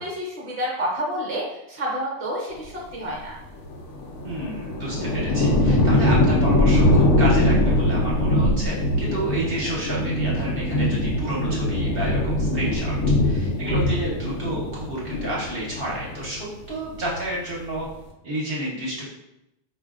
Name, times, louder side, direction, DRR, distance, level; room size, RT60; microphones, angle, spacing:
voice 1, 0.0-1.4 1.7-3.3, equal, 30° right, -3 dB, 0.8 m, -29 dB
sound 1, 3.7-16.4 16.8-17.4, left 1 dB, 80° left, 0.9 m, -22 dB
voice 2, 4.2-12.9 13.2-17.9 18.2-19.1, right 1 dB, 55° right, -5 dB, 1.0 m, -30 dB
4.2 x 2.5 x 2.4 m, 0.87 s
omnidirectional pair, 1.2 m